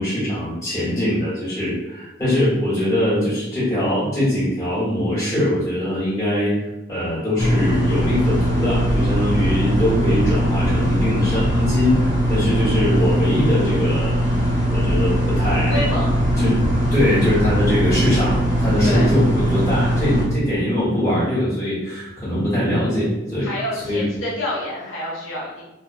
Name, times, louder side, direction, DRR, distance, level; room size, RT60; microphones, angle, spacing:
voice 1, 0.0-6.5 6.9-14.2 14.7-15.9 16.4-16.6 16.9-23.5 23.8-24.1, left 1 dB, 15° left, -9 dB, 1.3 m, -22 dB
Kitchen Room Tone, 7.4-20.2, equal, 20° right, 0.9 m, -20 dB
voice 2, 15.7-16.1 16.8-16.9 18.8-19.1 23.4-25.6, left 1 dB, 75° left, -6 dB, 0.8 m, -27 dB
2.6 x 2.2 x 2.6 m, 1.0 s
head